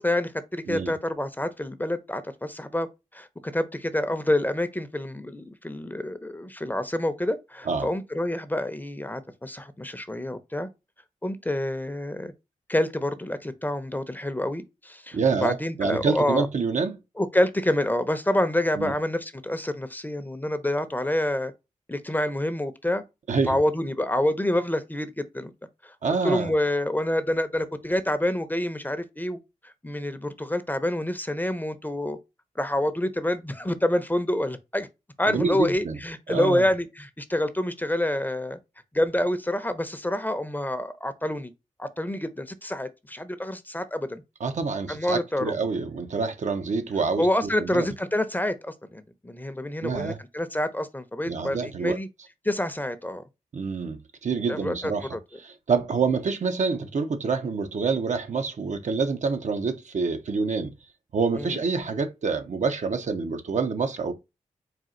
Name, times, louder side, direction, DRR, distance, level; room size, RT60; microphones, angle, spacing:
voice 1, 0.0-2.9 3.1-10.7 11.2-12.3 12.7-16.5 17.2-21.5 21.9-23.0 23.5-25.5 25.8-25.9 26.2-29.4 29.6-32.2 32.6-34.9 35.2-38.6 38.9-41.5 41.8-44.2 44.9-45.5 47.2-52.1 52.4-53.2 54.5-55.2 61.4-61.6, left 1 dB, 15° left, 0.7 m, -27 dB
voice 2, 15.1-17.0 18.8-18.9 23.3-23.6 26.0-26.5 35.3-36.0 36.3-36.6 44.4-47.9 49.8-50.2 51.2-52.0 53.5-60.7 61.1-64.1, right 4 dB, 60° right, 0.7 m, -27 dB
4.3 x 2.4 x 3.7 m
supercardioid pair, 45°, 14 cm